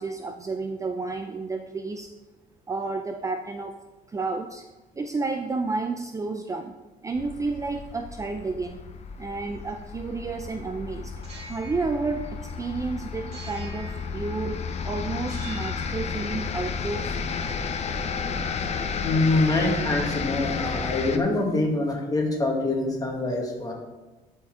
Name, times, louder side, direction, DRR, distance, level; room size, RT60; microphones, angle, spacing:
voice 1, 0.0-2.1 2.7-3.8 4.1-4.6 5.0-6.7 7.0-8.8 9.2-11.1 11.5-14.6 14.8-17.1, right 3 dB, 20° right, 5 dB, 0.4 m, -31 dB
sound 1, 7.1-21.2, left 5 dB, 40° left, 0.6 m, -32 dB
sound 2, 11.1-12.8 13.3-14.7 15.2-15.9, right 3 dB, 40° right, 2.6 m, -46 dB
voice 2, 19.0-23.7, left 2 dB, 20° left, 0 dB, 1.8 m, -25 dB
12.0 x 4.3 x 3.6 m, 1.2 s
cardioid pair, 110°, 17 cm